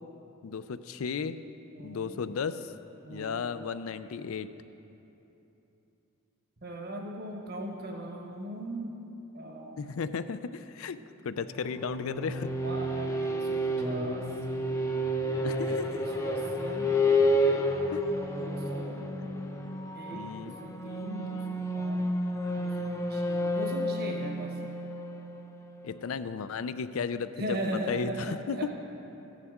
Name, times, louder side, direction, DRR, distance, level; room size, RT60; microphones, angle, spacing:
voice 1, 0.4-1.4 1.8-2.7 3.1-4.5 9.8-11.0 11.2-12.5 15.4-16.0 17.9-18.0 20.1-20.6 25.8-28.6, left 5 dB, 75° left, 13 dB, 0.4 m, -34 dB
voice 2, 1.7-2.2 3.0-3.4 6.6-8.9 9.3-9.9 12.6-14.3 15.2-17.7 18.4-19.0 19.9-22.1 22.5-24.6 27.4-28.7, right 1 dB, 45° right, 1 dB, 1.0 m, -39 dB
sound 1, 11.5-26.1, left 1 dB, 15° left, 0.5 m, -30 dB
15.0 x 9.8 x 3.6 m, 3.0 s
head